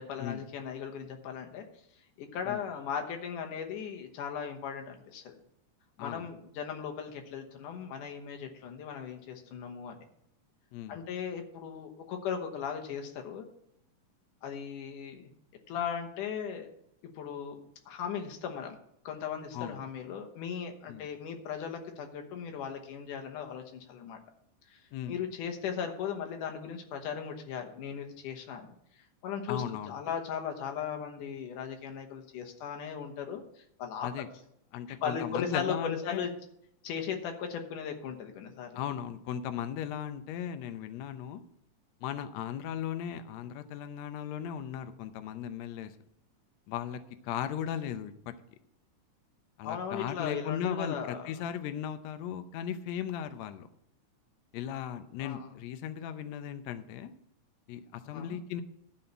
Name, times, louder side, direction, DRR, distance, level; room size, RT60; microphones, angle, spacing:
voice 1, 0.0-1.7 2.2-5.3 6.0-10.0 10.9-13.5 14.4-15.3 15.7-16.7 17.2-17.6 17.9-18.8 19.0-24.2 24.7-24.8 25.1-28.7 29.2-34.1 34.9-36.3 36.8-38.7 49.6-51.3 55.2-55.5 58.0-58.4, left 7 dB, 90° left, 4 dB, 2.7 m, -37 dB
voice 2, 10.7-11.0 19.5-19.8 20.9-21.1 24.9-25.2 29.5-30.0 34.0-34.3 34.7-36.2 38.7-41.4 42.0-45.9 46.7-48.3 49.6-53.7 54.5-57.1 57.7-58.6, left 9 dB, 75° left, 10 dB, 1.7 m, -37 dB
12.5 x 4.2 x 7.8 m, 0.74 s
omnidirectional pair, 3.6 m